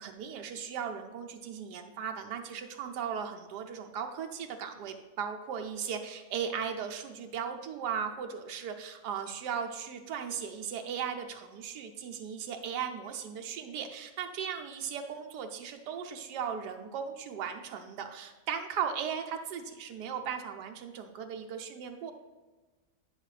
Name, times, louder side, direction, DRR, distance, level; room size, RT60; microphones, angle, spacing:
voice 1, 0.0-22.1, right 7 dB, 85° right, 5 dB, 1.3 m, -37 dB
9.9 x 5.4 x 3.3 m, 1.3 s
omnidirectional pair, 1.7 m